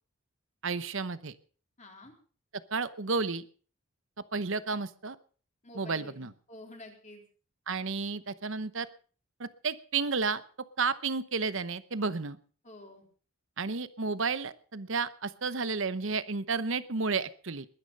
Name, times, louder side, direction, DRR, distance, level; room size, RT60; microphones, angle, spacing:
voice 1, 0.6-1.3 2.7-3.4 4.3-5.2 5.7-6.3 7.7-8.9 9.4-10.4 10.8-12.4 13.6-17.7, right 4 dB, 60° right, 14 dB, 0.9 m, -32 dB
voice 2, 1.8-2.1 5.6-7.2 12.6-13.1, left 2 dB, 35° left, 2 dB, 3.8 m, -49 dB
21.0 x 10.0 x 5.3 m, 0.41 s
head